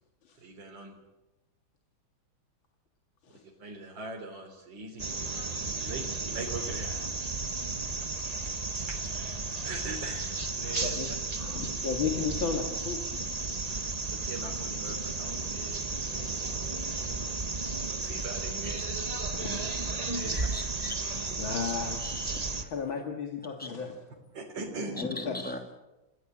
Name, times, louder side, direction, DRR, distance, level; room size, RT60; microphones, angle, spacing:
voice 1, 0.4-0.9 3.6-5.1 5.8-6.9 8.0-8.1 8.5-11.2 14.1-16.0 17.5-18.8 20.1-20.3 24.3-25.0, right 3 dB, 70° right, 1 dB, 4.2 m, -41 dB
sound 1, 5.0-22.6, right 3 dB, 25° right, 1.2 m, -33 dB
voice 2, 11.4-13.3 13.7-13.8 19.3-19.6 20.1-20.5 21.2-22.0 22.7-24.0 25.0-25.3, left 6 dB, 85° left, 3 dB, 2.8 m, -34 dB
voice 3, 20.5-21.0 22.0-22.5 23.4-23.7 25.0-25.6, left 1 dB, 5° left, 4 dB, 2.8 m, -39 dB
28.0 x 16.5 x 8.7 m, 1.0 s
omnidirectional pair, 2.1 m